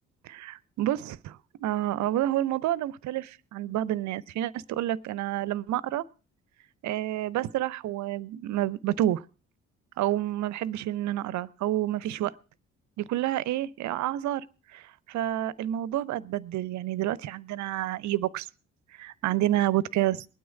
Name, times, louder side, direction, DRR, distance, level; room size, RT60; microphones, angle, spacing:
voice 1, 0.2-6.0 6.8-9.2 10.0-12.3 13.0-14.4 14.7-18.5 18.9-20.3, right 13 dB, 50° right, 21 dB, 0.6 m, -29 dB
20.5 x 9.4 x 4.6 m, 0.36 s
figure-of-eight pair, 40°, 38 cm